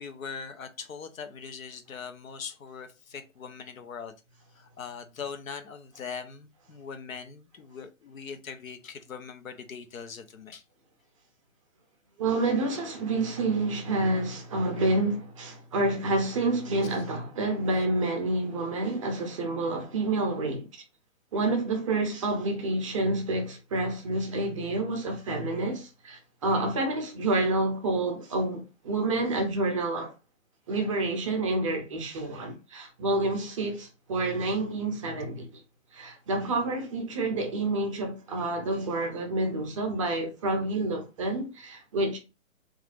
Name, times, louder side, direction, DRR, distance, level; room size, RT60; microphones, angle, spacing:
voice 1, 0.0-4.1 4.5-10.6 16.8-17.0, left 6 dB, 80° left, 0.8 m, -41 dB
voice 2, 12.2-20.8 21.3-30.1 30.7-35.6 35.9-42.2, right 2 dB, 25° right, 0.5 m, -28 dB
3.1 x 2.4 x 2.4 m
hypercardioid pair, 140°, 40 cm